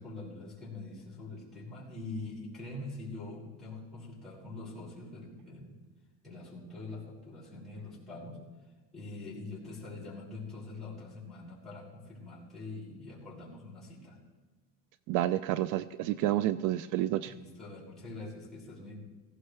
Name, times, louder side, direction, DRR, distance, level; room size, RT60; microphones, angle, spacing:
voice 1, 0.0-5.8 6.2-8.4 8.9-14.2 17.3-19.0, left 2 dB, ahead, -8 dB, 5.7 m, -44 dB
voice 2, 15.1-17.3, right 13 dB, 60° right, 15 dB, 0.5 m, -29 dB
17.5 x 15.5 x 3.3 m, 1.3 s
cardioid pair, 145°, 35 cm